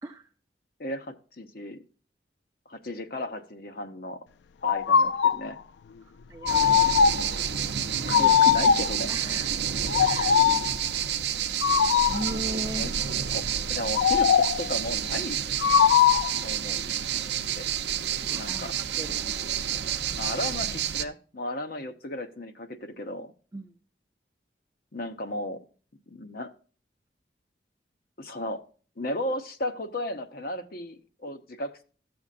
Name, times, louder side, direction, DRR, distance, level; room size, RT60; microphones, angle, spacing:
voice 1, 0.8-1.8 2.7-4.3 4.6-5.6 8.0-9.4 12.7-12.9 13.3-15.4 16.4-16.8 17.3-17.7 18.3-18.7 20.2-23.3 24.9-25.6 26.1-26.5 28.2-28.6 29.0-31.8, left 1 dB, 55° left, 7 dB, 1.0 m, -35 dB
sound 1, 4.6-5.5 6.4-7.3 8.1-9.0 9.9-10.7 11.6-12.3 13.9-14.7 15.6-16.4, left 8 dB, 75° left, 0.3 m, -21 dB
voice 2, 6.0-6.7 9.1-9.5 10.0-10.4 12.1-12.8 18.2-19.3 23.5-23.8, right 1 dB, 20° right, 3 dB, 0.5 m, -38 dB
sound 2, 6.5-21.0, right 9 dB, 75° right, 0.6 m, -29 dB
13.0 x 7.0 x 2.5 m, 0.40 s
head